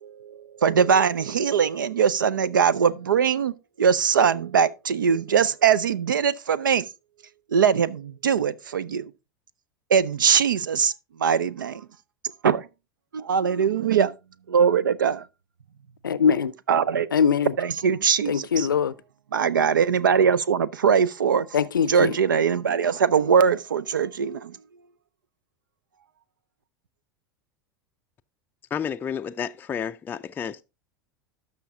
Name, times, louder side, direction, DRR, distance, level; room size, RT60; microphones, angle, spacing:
voice 1, 0.0-6.9 7.5-9.1 9.9-10.9 11.2-11.8 12.4-12.7 13.1-14.1 14.5-15.3 16.7-17.1 17.6-18.7 19.3-21.5 21.9-24.6, right 7 dB, 70° right, 0.5 m, -21 dB
voice 2, 16.0-16.5 17.1-17.5 18.3-18.9 21.5-22.2, left 7 dB, 75° left, 0.5 m, -22 dB
voice 3, 28.7-30.6, left 7 dB, 15° left, 0.4 m, -31 dB
12.5 x 5.7 x 3.6 m
figure-of-eight pair, 85°, 11 cm